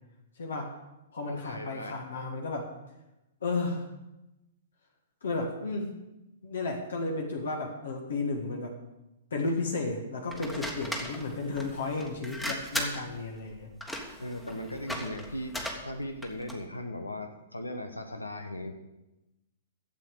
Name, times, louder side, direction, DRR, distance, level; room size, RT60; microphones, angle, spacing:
voice 1, 0.4-0.7 1.1-2.7 3.4-3.8 5.2-5.9 6.4-8.8 9.3-13.7, left 3 dB, 60° left, 2 dB, 1.7 m, -33 dB
voice 2, 1.3-2.0 14.2-18.7, left 1 dB, 80° left, 7 dB, 1.0 m, -38 dB
sound 1, 10.3-16.7, equal, 5° left, 1.4 m, -38 dB
12.0 x 7.8 x 6.3 m, 0.97 s
figure-of-eight pair, 110°, 0 cm